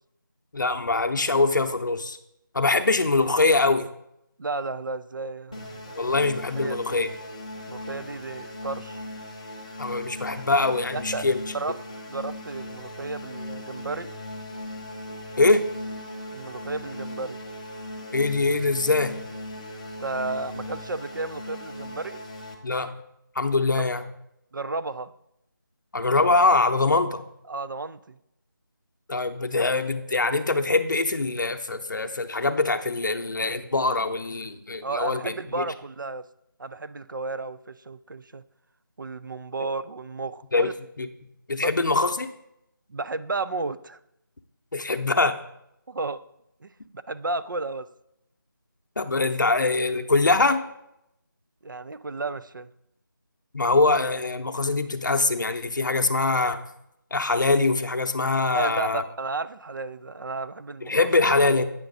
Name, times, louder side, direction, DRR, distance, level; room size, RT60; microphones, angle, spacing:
voice 1, 0.5-2.2 2.5-3.9 6.0-7.1 9.8-11.4 15.4-15.6 18.1-19.1 22.6-22.9 23.4-24.1 25.9-27.2 29.1-35.6 39.6-39.7 40.5-40.7 41.0-41.1 41.5-42.3 44.7-45.3 49.0-50.6 53.5-56.6 57.1-59.0 60.8-61.6, left 3 dB, 60° left, 7 dB, 0.7 m, -23 dB
voice 2, 4.4-6.1 6.6-7.0 7.7-9.0 10.9-11.2 11.5-11.8 12.1-14.1 16.3-17.4 20.0-22.2 23.8-23.9 24.5-25.1 27.5-28.2 34.8-36.3 36.6-38.4 39.0-40.7 41.6-41.7 42.9-44.0 45.9-46.2 46.6-47.9 51.6-52.7 58.5-61.1, right 3 dB, 65° right, 13 dB, 0.4 m, -33 dB
sound 1, 5.5-22.6, left 1 dB, 20° left, 0.6 m, -38 dB
8.9 x 5.7 x 4.0 m, 0.81 s
figure-of-eight pair, 175°, 12 cm